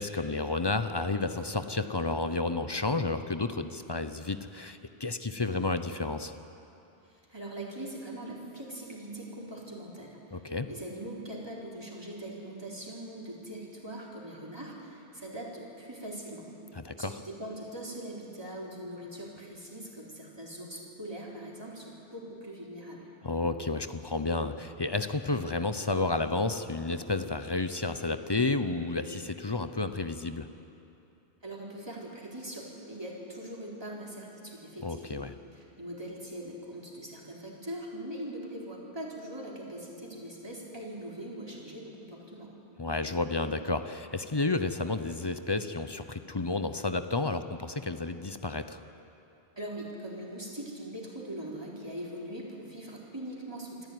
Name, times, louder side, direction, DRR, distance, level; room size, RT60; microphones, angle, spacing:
voice 1, 0.0-6.3 10.3-10.7 16.7-17.2 23.2-30.5 34.8-35.3 42.8-48.8, left 3 dB, 25° left, 9 dB, 0.7 m, -31 dB
voice 2, 7.0-16.5 17.0-23.1 31.4-35.2 35.5-42.5 49.6-53.9, right 1 dB, 25° right, -4 dB, 4.0 m, -41 dB
25.5 x 14.0 x 9.4 m, 2.8 s
omnidirectional pair, 1.1 m